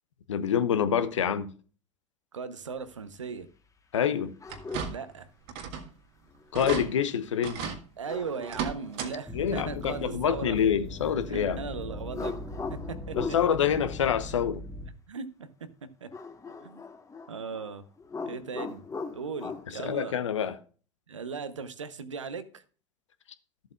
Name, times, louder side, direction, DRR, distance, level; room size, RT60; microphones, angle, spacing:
voice 1, 0.3-1.5 3.9-4.3 6.5-7.7 9.3-11.6 13.2-14.6 19.8-20.5, left 8 dB, 80° left, 0.8 m, -26 dB
voice 2, 2.3-3.5 4.9-5.3 8.0-10.6 11.3-12.4 12.7-13.4 15.1-15.7 16.0-16.1 16.6-16.8 17.3-17.9 18.2-18.9 19.1-20.1 21.1-22.6, right 5 dB, 90° right, 0.8 m, -38 dB
sound 1, 4.4-5.0 6.4-7.1 8.1-9.2 12.1-13.5 16.1-17.7 18.0-19.6, left 4 dB, 20° left, 1.2 m, -39 dB
sound 2, 4.5-5.2 5.5-5.9 6.2-6.3 6.5-6.9 7.4-7.8 8.4-9.1 9.5-9.6 11.0-11.1 11.6-11.7, right 6 dB, 65° right, 1.6 m, -35 dB
sound 3, 9.3-14.9, left 1 dB, 5° right, 1.4 m, -40 dB
13.5 x 7.7 x 2.3 m
hypercardioid pair, 75°, 15 cm